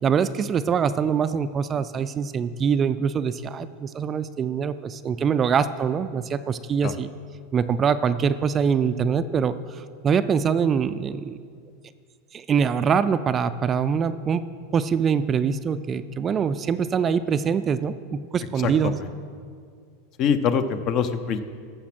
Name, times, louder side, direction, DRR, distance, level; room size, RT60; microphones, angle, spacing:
voice 1, 0.0-7.1 7.5-9.5 10.0-11.4 12.3-14.4 14.7-19.0, right 6 dB, 25° right, 12 dB, 0.4 m, -24 dB
voice 2, 18.6-19.1 20.2-21.4, left 7 dB, 45° left, 11 dB, 0.7 m, -24 dB
14.5 x 6.0 x 6.0 m, 2.1 s
supercardioid pair, 130°, 0 cm